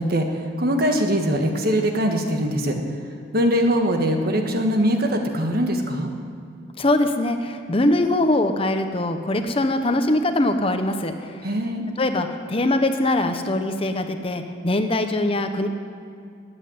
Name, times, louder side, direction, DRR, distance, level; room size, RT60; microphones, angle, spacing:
voice 1, 0.0-2.8 3.3-6.1 11.4-11.8, equal, 55° right, 4 dB, 1.6 m, -22 dB
voice 2, 6.8-11.5 12.0-15.7, left 1 dB, 30° left, 7 dB, 0.9 m, -22 dB
13.0 x 9.0 x 9.6 m, 2.4 s
head